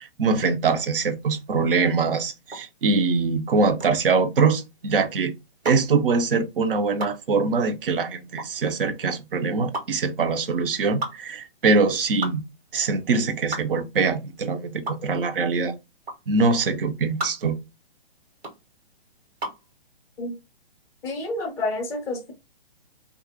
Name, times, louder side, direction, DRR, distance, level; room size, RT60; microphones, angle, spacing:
voice 1, 0.0-5.3 5.6-12.5 12.7-15.7 16.3-17.6, right 4 dB, 60° right, 0.6 m, -23 dB
sound 1, 2.4-19.7, right 2 dB, 80° right, 1.4 m, -36 dB
voice 2, 21.0-22.3, left 2 dB, 10° left, 0.5 m, -29 dB
2.4 x 2.0 x 2.6 m
hypercardioid pair, 140°, 31 cm